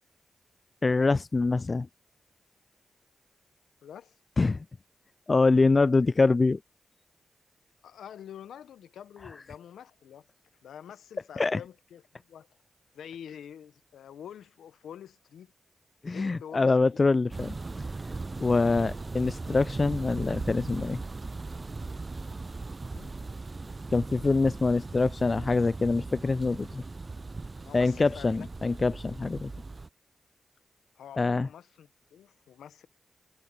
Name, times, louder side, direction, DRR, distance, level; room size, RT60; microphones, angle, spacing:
voice 1, 0.8-1.9 4.4-4.6 5.3-6.6 11.4-11.6 16.0-17.6 18.4-21.0 23.9-26.8 27.7-29.5 31.2-31.5, left 3 dB, 45° left, 0.3 m, -25 dB
voice 2, 3.8-4.2 7.8-10.3 10.6-12.5 12.9-15.5 16.1-17.1 22.9-23.1 27.6-28.5 30.9-32.9, left 9 dB, 90° left, 0.8 m, -47 dB
sound 1, 17.3-29.9, right 3 dB, 40° right, 0.4 m, -38 dB
supercardioid pair, 40°, 0 cm